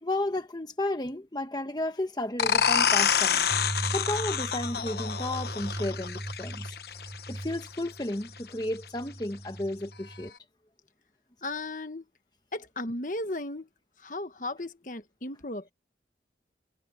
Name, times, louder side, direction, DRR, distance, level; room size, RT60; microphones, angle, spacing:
voice 1, 0.0-3.5 3.9-6.7 7.3-10.3, left 1 dB, 25° left, 1.1 m, -33 dB
glitchy fx, 2.4-7.8, left 7 dB, 65° left, 1.0 m, -27 dB
sound 1, 3.5-10.3, right 1 dB, 15° right, 0.6 m, -39 dB
voice 2, 11.4-12.0 12.5-13.7 14.0-15.7, left 2 dB, 45° left, 1.4 m, -35 dB
head